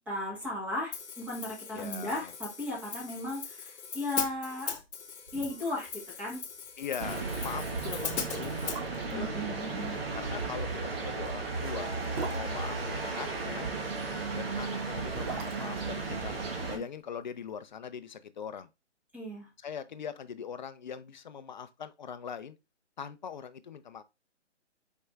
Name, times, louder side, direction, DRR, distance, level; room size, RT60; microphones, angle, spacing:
voice 1, 0.1-4.8 5.3-6.4 9.1-10.0 16.6-16.8 19.1-19.5, left 1 dB, 5° right, 1.1 m, -36 dB
Hi-hat, 0.9-8.8, left 7 dB, 65° left, 0.9 m, -40 dB
voice 2, 1.7-2.3 6.8-8.8 9.1-11.9 12.3-13.7 14.3-16.4 16.7-18.7 19.6-22.6 23.0-24.0, left 7 dB, 40° left, 0.5 m, -41 dB
sound 1, 4.9-5.0 5.3-5.9 6.2-6.3 6.7-6.9 7.6-7.7 8.3-9.3 10.8-13.4 14.7-16.9 17.2-17.3, right 4 dB, 35° right, 0.9 m, -42 dB
sound 2, 7.0-16.8, right 3 dB, 55° right, 1.3 m, -35 dB
4.8 x 4.5 x 2.4 m
hypercardioid pair, 155°, 35 cm